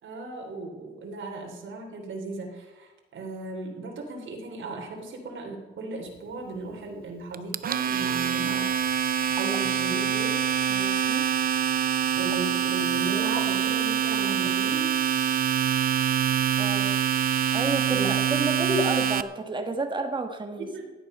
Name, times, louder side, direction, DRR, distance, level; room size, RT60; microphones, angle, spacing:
voice 1, 0.0-10.4 12.1-14.9 17.9-18.3 20.6-20.9, right 2 dB, 75° right, 1 dB, 3.1 m, -36 dB
Domestic sounds home sounds, 7.3-19.2, right 9 dB, 45° right, 0.5 m, -25 dB
voice 2, 10.7-11.2 13.2-13.4 16.6-16.9 17.5-20.7, right 2 dB, 25° right, 5 dB, 1.6 m, -31 dB
16.0 x 10.5 x 5.4 m, 1.2 s
wide cardioid pair, 150°, 20 cm